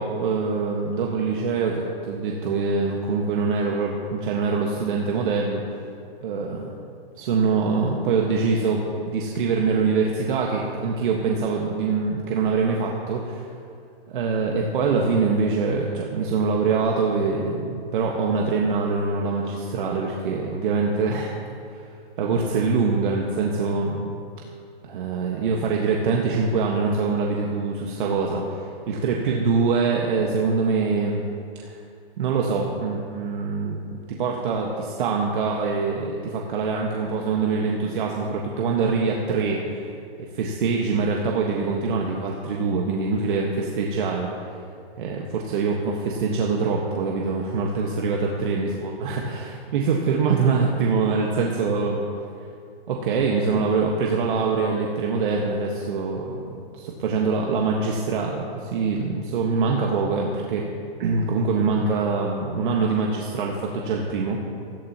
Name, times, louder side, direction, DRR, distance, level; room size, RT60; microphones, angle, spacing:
voice 1, 0.0-5.6 6.2-6.7 7.2-13.5 14.1-21.3 21.7-21.9 22.2-24.2 24.8-31.2 31.6-31.8 32.2-39.9 40.3-44.5 45.0-52.1 52.9-60.7 61.0-64.4, right 4 dB, 55° right, -1 dB, 1.6 m, -24 dB
20.5 x 15.5 x 3.0 m, 2.4 s
hypercardioid pair, 135°, 31 cm